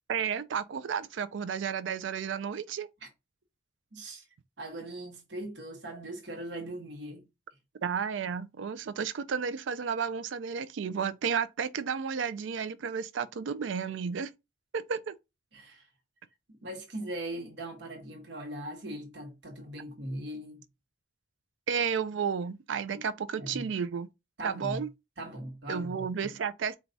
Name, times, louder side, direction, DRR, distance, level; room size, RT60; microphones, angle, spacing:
voice 1, 0.1-2.9 7.8-14.3 14.7-15.2 21.7-24.1 24.4-24.9 25.7-26.8, right 6 dB, 90° right, 0.4 m, -32 dB
voice 2, 3.9-4.2 4.6-7.3 15.5-15.9 16.5-20.6 22.9-23.0 23.3-23.7 24.4-24.8 25.2-26.3, right 1 dB, 75° right, 1.1 m, -40 dB
4.6 x 2.3 x 3.9 m
head